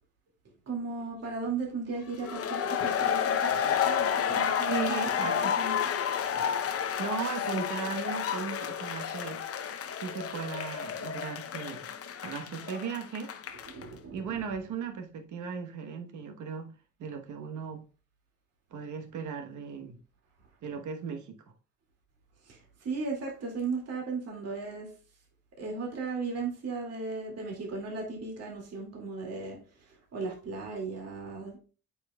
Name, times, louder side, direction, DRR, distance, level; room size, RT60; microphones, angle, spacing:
voice 1, 0.7-5.0 5.2-5.8 13.6-14.3 22.4-24.9 25.6-31.6, right 4 dB, 55° right, 2.3 m, -36 dB
sound 1, 2.2-13.8, left 8 dB, 50° left, 0.7 m, -31 dB
voice 2, 4.6-5.6 7.0-9.4 9.9-11.9 12.2-13.3 14.1-16.7 17.0-17.8 18.7-20.0 20.6-21.4, right 6 dB, 75° right, 1.2 m, -37 dB
8.1 x 5.7 x 2.3 m
cardioid pair, 90°, 30 cm